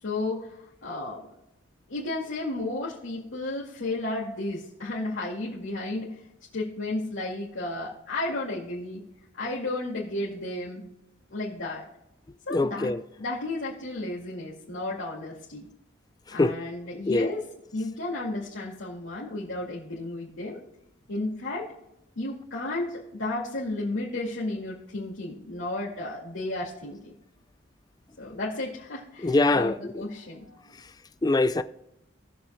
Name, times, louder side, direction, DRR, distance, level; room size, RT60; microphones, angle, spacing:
voice 1, 0.0-1.3 1.9-6.2 6.5-9.0 9.4-10.8 11.3-11.9 12.5-15.7 16.3-20.6 21.1-21.7 22.2-27.1 28.2-30.8, left 2 dB, 80° left, 2.2 m, -33 dB
voice 2, 12.5-13.0 16.4-16.5 17.1-17.3 29.2-29.7 31.2-31.6, left 2 dB, 20° left, 0.4 m, -22 dB
19.5 x 7.0 x 2.2 m
head